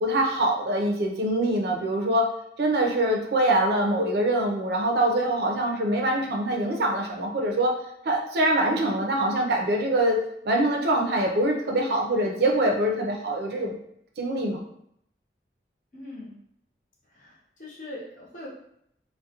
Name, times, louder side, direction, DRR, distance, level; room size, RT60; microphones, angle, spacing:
voice 1, 0.0-2.3 2.6-7.7 8.1-13.8 14.2-14.6, right 1 dB, 65° right, 0 dB, 0.4 m, -24 dB
voice 2, 15.9-16.3 17.1-18.5, left 1 dB, 45° left, -5 dB, 0.7 m, -41 dB
2.4 x 2.1 x 2.7 m, 0.73 s
head